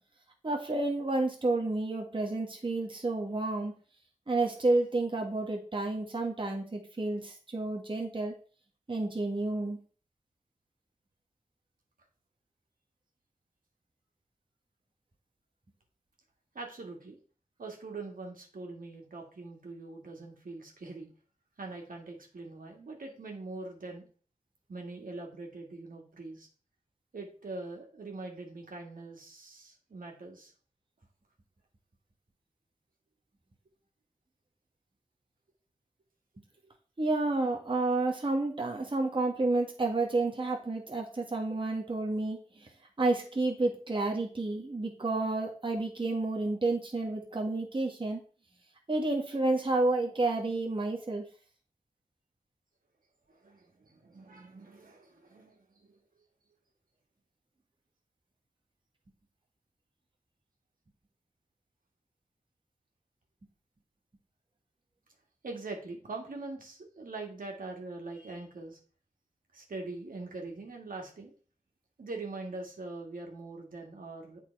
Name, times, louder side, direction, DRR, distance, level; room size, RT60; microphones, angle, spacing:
voice 1, 0.4-3.8 4.3-8.3 8.9-9.8 37.0-42.7 43.0-48.2 48.9-51.2, right 2 dB, 35° right, 1 dB, 1.5 m, -30 dB
voice 2, 16.5-17.2 17.6-21.1 21.6-24.1 24.7-26.5 27.1-30.5 53.3-56.0 65.4-68.8 69.5-71.3 72.0-74.4, right 3 dB, 75° right, 1 dB, 2.1 m, -43 dB
8.2 x 4.5 x 4.7 m, 0.40 s
cardioid pair, 55°, 14 cm